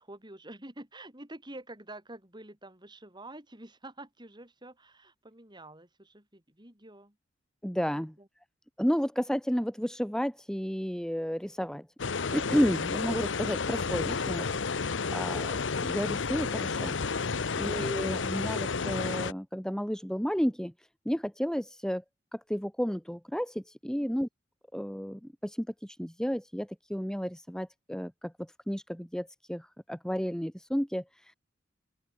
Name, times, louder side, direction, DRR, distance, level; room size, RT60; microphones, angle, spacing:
voice 1, 0.0-7.2 7.9-8.3 23.9-24.1, right 1 dB, 25° right, 7.4 m, -48 dB
voice 2, 7.6-8.1 8.8-11.9 12.3-14.5 14.8-16.9 17.5-20.7 21.0-22.0 22.3-24.3 24.7-31.3, equal, 5° left, 1.6 m, -32 dB
sound 1, 12.0-19.3, left 4 dB, 70° left, 0.9 m, -31 dB
open air
head